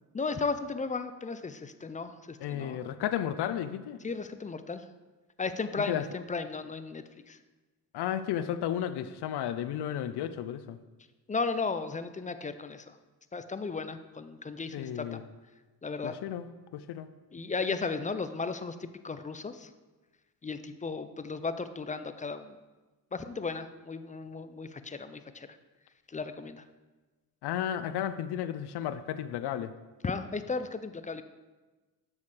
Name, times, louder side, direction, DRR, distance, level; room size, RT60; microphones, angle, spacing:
voice 1, 0.1-2.8 4.0-4.8 5.4-7.4 11.3-13.0 13.3-15.2 15.8-16.2 17.3-19.7 20.4-22.6 23.1-25.6 26.1-26.6 30.0-31.2, left 4 dB, 20° left, 11 dB, 0.4 m, -35 dB
voice 2, 2.4-4.0 5.9-6.0 7.9-10.8 14.7-15.2 16.0-17.1 27.4-29.7, left 10 dB, 75° left, 12 dB, 0.5 m, -33 dB
7.1 x 6.3 x 3.3 m, 1.2 s
supercardioid pair, 65°, 41 cm